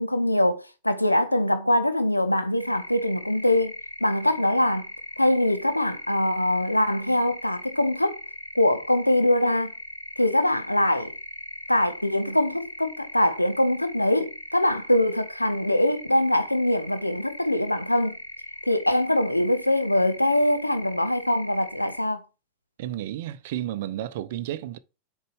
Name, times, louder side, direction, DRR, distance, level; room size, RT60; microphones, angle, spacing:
voice 1, 0.0-3.7 4.0-4.9 5.2-8.2 8.5-9.7 10.2-11.1 11.7-18.2 18.7-22.2, left 1 dB, 85° left, 0.7 m, -23 dB
sound 1, 2.6-22.0, equal, 90° right, 0.8 m, -40 dB
voice 2, 22.8-24.8, right 13 dB, 55° right, 0.5 m, -32 dB
6.7 x 4.5 x 5.0 m
figure-of-eight pair, 90°, 0 cm